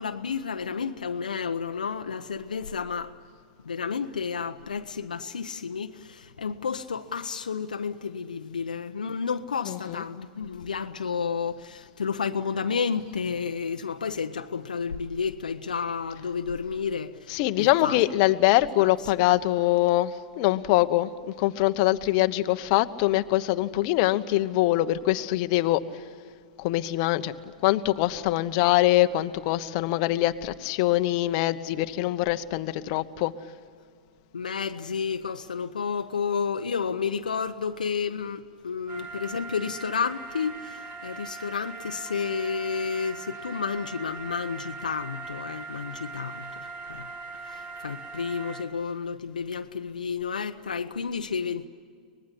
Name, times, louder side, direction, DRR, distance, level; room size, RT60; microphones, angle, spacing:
voice 1, 0.0-3.2 3.6-18.0 18.8-18.9 34.3-47.1 47.5-51.7, left 6 dB, 85° left, 0.9 m, -31 dB
voice 2, 9.7-10.0 17.3-21.1 21.4-25.8 26.6-27.3 27.6-33.3, left 16 dB, 50° left, 1.1 m, -23 dB
sound 1, 38.9-48.6, right 4 dB, 35° right, 4.9 m, -40 dB
24.0 x 20.0 x 10.0 m
hypercardioid pair, 110°, 4 cm